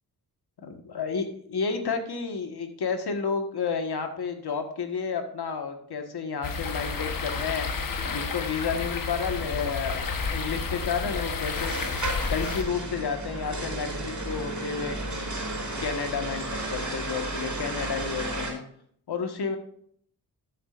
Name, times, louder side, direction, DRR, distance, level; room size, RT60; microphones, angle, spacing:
voice 1, 0.6-7.7 8.0-11.8 12.2-15.0 15.8-18.6 19.1-19.6, left 5 dB, 75° left, 6 dB, 1.6 m, -31 dB
sound 1, 6.4-12.6, left 4 dB, 55° left, 1.2 m, -31 dB
sound 2, 9.2-18.5, right 1 dB, 45° right, 3.5 m, -34 dB
12.5 x 7.3 x 2.5 m, 0.63 s
cardioid pair, 70°, 39 cm